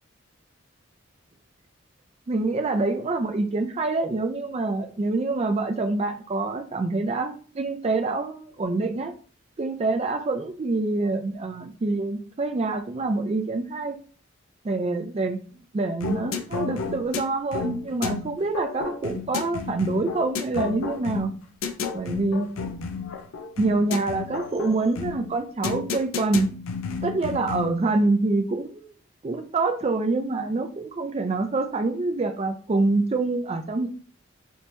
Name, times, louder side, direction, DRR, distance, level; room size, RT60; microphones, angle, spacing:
voice 1, 2.3-9.1 9.6-14.0 14.6-15.4 15.7-21.3 21.9-22.5 23.6-26.5 27.0-28.9 29.2-33.9, right 3 dB, 30° right, 6 dB, 0.4 m, -26 dB
sound 1, 16.0-27.8, left 5 dB, 90° left, 0.4 m, -32 dB
3.5 x 2.9 x 2.6 m, 0.40 s
head